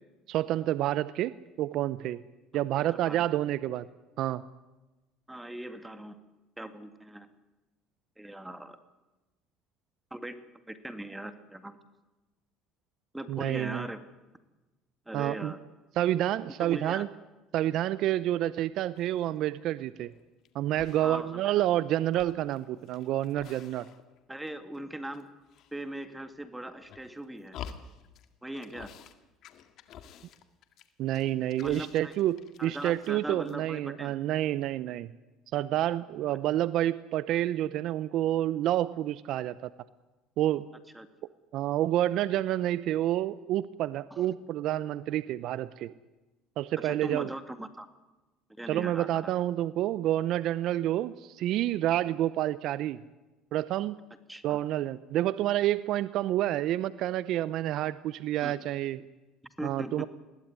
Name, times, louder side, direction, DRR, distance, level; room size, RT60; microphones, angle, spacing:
voice 1, 0.3-2.2 2.5-3.9 4.2-4.4 13.3-13.8 15.1-15.5 16.0-17.1 17.5-20.1 20.5-23.9 31.0-35.1 35.5-39.7 40.4-40.6 41.5-45.9 46.6-47.3 48.7-53.0 53.5-54.0 54.4-59.0 59.6-60.1, right 13 dB, 65° right, 16 dB, 0.7 m, -29 dB
voice 2, 2.7-3.3 5.3-6.2 6.6-7.3 8.2-8.8 10.1-10.4 10.7-11.8 13.1-14.0 15.1-15.6 16.6-17.0 21.0-21.7 24.3-25.3 25.7-27.6 28.4-28.9 31.6-32.2 32.6-34.1 36.3-36.4 40.9-41.1 44.1-44.3 46.8-47.9 48.6-49.3 54.3-54.6 58.4-58.5 59.4-60.1, right 1 dB, 10° right, 9 dB, 2.2 m, -40 dB
sound 1, 18.9-19.4 19.9-20.5 20.7-21.7 22.0-24.2 24.4-25.2 25.5-26.3 26.7-28.3 28.5-29.1 29.4-33.2 33.4-33.6, left 8 dB, 60° left, 2.0 m, -49 dB
21.0 x 17.0 x 9.6 m, 1.1 s
supercardioid pair, 95°, 0 cm